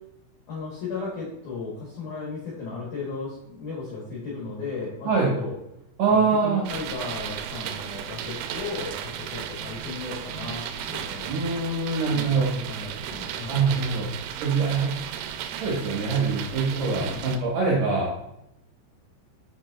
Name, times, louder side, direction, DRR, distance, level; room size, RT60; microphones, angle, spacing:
voice 1, 0.5-5.5 6.1-11.3 12.1-13.6 17.0-17.2, left 4 dB, 70° left, -5 dB, 1.9 m, -35 dB
voice 2, 5.0-5.4 6.0-6.6 11.3-12.5 13.5-14.1 14.4-14.9 15.6-18.1, right 4 dB, 70° right, -4 dB, 2.1 m, -24 dB
sound 1, 6.6-17.4, right 9 dB, 85° right, 3.1 m, -35 dB
6.5 x 6.0 x 2.4 m, 0.85 s
omnidirectional pair, 5.7 m